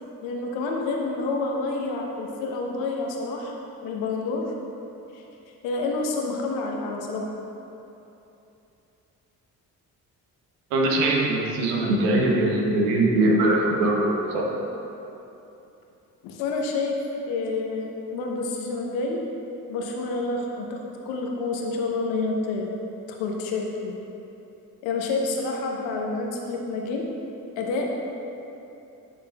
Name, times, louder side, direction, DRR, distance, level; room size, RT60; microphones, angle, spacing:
voice 1, 0.2-3.6 3.8-4.4 5.1-5.2 5.6-7.3 16.2-16.9 17.3-19.2 19.7-22.7 23.1-23.9 24.8-27.0 27.6-27.9, left 3 dB, 70° left, 0 dB, 1.0 m, -28 dB
voice 2, 10.7-14.5, right 2 dB, 75° right, -1 dB, 1.0 m, -22 dB
9.5 x 6.4 x 2.3 m, 2.9 s
figure-of-eight pair, 45°, 47 cm